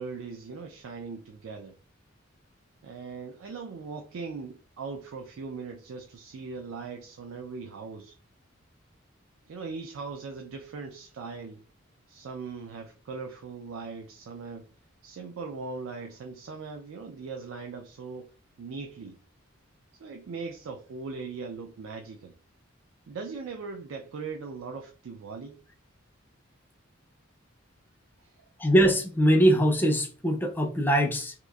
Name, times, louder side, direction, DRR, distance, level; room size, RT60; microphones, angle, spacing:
voice 1, 0.0-1.8 2.8-8.2 9.5-11.6 12.1-14.7 15.0-18.3 18.6-19.2 20.0-22.3 23.1-25.6 28.2-28.5, right 4 dB, 80° right, 0.4 m, -39 dB
voice 2, 28.6-31.3, equal, 10° left, 0.4 m, -22 dB
2.8 x 2.4 x 2.2 m
head